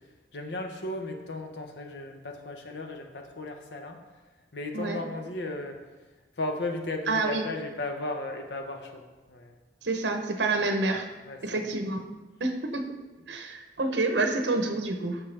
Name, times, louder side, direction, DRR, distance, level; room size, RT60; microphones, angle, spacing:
voice 1, 0.0-4.0 4.5-5.8 6.4-9.5 11.3-11.6, left 2 dB, 75° left, 4 dB, 1.0 m, -35 dB
voice 2, 7.1-7.4 9.8-11.1 11.4-12.0 12.4-12.9 13.3-15.2, right 2 dB, 80° right, 5 dB, 0.9 m, -28 dB
9.0 x 6.5 x 3.4 m, 1.2 s
head